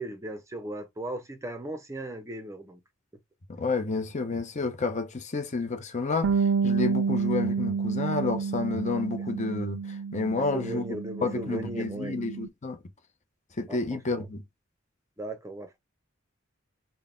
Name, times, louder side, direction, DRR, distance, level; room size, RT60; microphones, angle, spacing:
voice 1, 0.0-2.8 10.5-12.2 13.7-14.2 15.2-15.8, right 1 dB, 15° right, 0.6 m, -37 dB
voice 2, 3.5-10.8 11.2-12.8 13.6-14.4, left 3 dB, 35° left, 0.7 m, -30 dB
Bass guitar, 6.2-12.5, right 5 dB, 70° right, 0.4 m, -29 dB
4.0 x 2.1 x 3.6 m
head